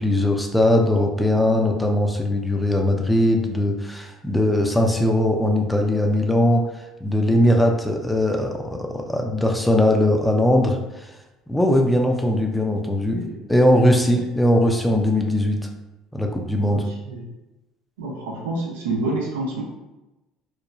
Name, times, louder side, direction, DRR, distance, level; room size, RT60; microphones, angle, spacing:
voice 1, 0.0-6.7 7.0-11.1 11.5-13.2 13.5-15.7 16.1-16.8, left 1 dB, 10° left, 2 dB, 0.4 m, -20 dB
voice 2, 18.0-19.6, right 2 dB, 85° right, -3 dB, 0.6 m, -28 dB
3.0 x 2.1 x 2.5 m, 1.0 s
hypercardioid pair, 70°, 0 cm